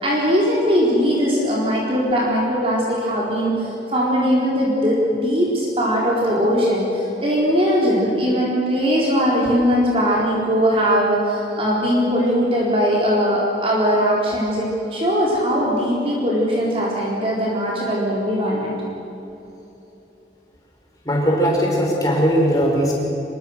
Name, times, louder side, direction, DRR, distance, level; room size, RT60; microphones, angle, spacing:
voice 1, 0.0-18.7, equal, 30° right, -5 dB, 4.2 m, -20 dB
voice 2, 21.1-22.9, equal, 20° left, -2 dB, 5.3 m, -19 dB
25.0 x 23.0 x 6.5 m, 3.0 s
head